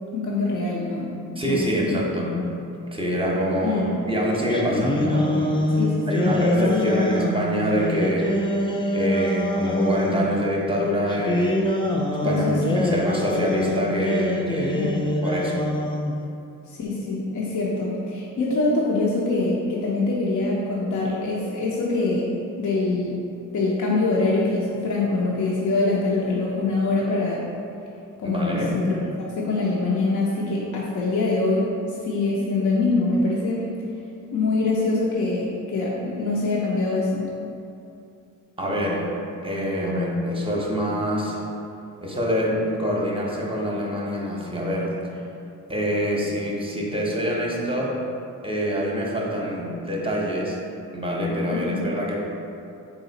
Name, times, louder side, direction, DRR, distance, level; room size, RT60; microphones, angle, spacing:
voice 1, 0.1-1.1 1.4-1.9 2.3-2.5 3.6-3.9 5.8-6.3 6.6-7.3 12.2-12.9 14.7-15.1 16.7-22.3 22.6-23.2 23.5-27.4 28.2-29.0 29.3-31.7 32.0-33.7 34.3-37.3 51.5-51.8, left 3 dB, 60° left, -5 dB, 0.6 m, -24 dB
voice 2, 1.4-2.4 2.9-5.8 6.1-8.4 8.9-11.6 12.2-12.4 12.8-14.9 15.2-15.7 28.2-28.8 38.6-39.1 39.4-41.4 42.0-45.0 45.7-47.9 48.4-50.6 50.9-52.2, equal, 15° right, -3 dB, 0.7 m, -25 dB
sound 1, 4.5-10.3 11.1-16.2, left 1 dB, 15° left, 0.3 m, -24 dB
3.9 x 2.4 x 3.9 m, 2.7 s
cardioid pair, 80°, 34 cm